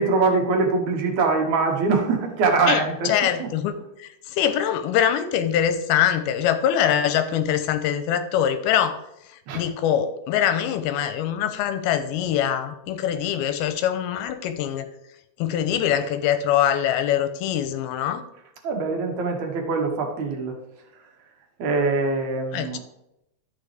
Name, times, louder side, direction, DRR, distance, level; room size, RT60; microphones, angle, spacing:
voice 1, 0.0-3.5 9.5-9.6 18.6-20.6 21.6-22.8, right 4 dB, 60° right, 3 dB, 2.4 m, -23 dB
voice 2, 2.7-9.0 9.3-14.9 15.4-18.2 22.5-22.8, left 10 dB, 85° left, 9 dB, 2.5 m, -23 dB
12.0 x 8.4 x 3.4 m, 0.85 s
omnidirectional pair, 4.5 m